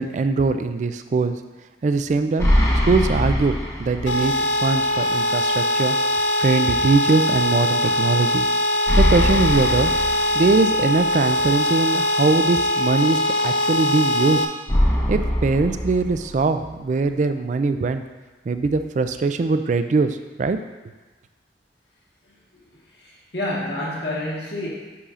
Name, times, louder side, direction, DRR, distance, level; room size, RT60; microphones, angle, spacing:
voice 1, 0.0-1.4 1.8-2.5 2.8-6.0 6.4-8.5 9.0-9.9 10.3-14.4 15.1-18.0 18.5-20.6, right 3 dB, 40° right, 9 dB, 0.3 m, -21 dB
sound 1, 2.4-4.4 4.7-4.8 8.9-10.9 14.7-16.7, equal, 15° left, 0.8 m, -22 dB
sound 2, 4.1-14.5, left 1 dB, 85° left, 0.7 m, -21 dB
voice 2, 23.0-24.7, left 1 dB, 65° left, -5 dB, 1.6 m, -28 dB
8.5 x 5.5 x 2.4 m, 1.2 s
head